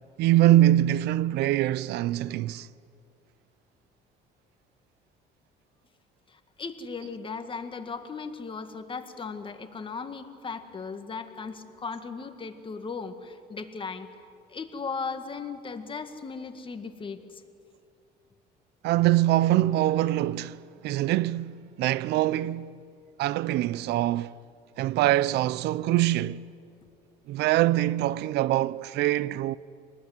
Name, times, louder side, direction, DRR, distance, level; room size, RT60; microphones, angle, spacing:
voice 1, 0.2-2.7 18.8-22.7 23.2-24.3 24.8-26.4 27.3-29.6, right 14 dB, 80° right, 0.6 m, -24 dB
voice 2, 6.3-14.1 14.5-17.4, left 5 dB, 30° left, 2.0 m, -37 dB
26.5 x 20.0 x 9.5 m
cardioid pair, 110°, 17 cm